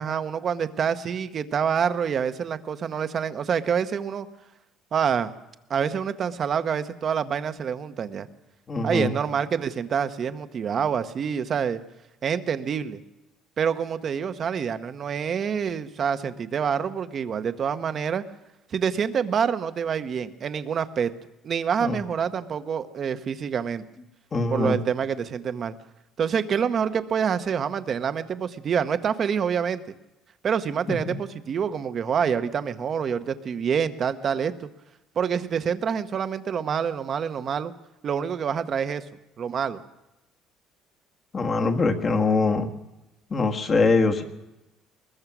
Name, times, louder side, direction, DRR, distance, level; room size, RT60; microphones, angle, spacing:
voice 1, 0.0-4.3 4.9-5.3 5.7-8.3 8.8-11.8 12.2-13.0 13.6-18.2 18.7-21.1 21.4-23.8 24.5-25.7 26.2-29.8 30.4-34.7 35.2-37.7 38.0-39.0 39.4-39.8, right 7 dB, 35° right, 10 dB, 1.0 m, -26 dB
voice 2, 8.7-9.2 21.8-22.0 24.3-24.8 30.9-31.1 41.3-42.7 43.3-44.2, left 3 dB, 25° left, 5 dB, 1.7 m, -23 dB
21.5 x 21.0 x 6.1 m, 0.95 s
cardioid pair, 160°, 0 cm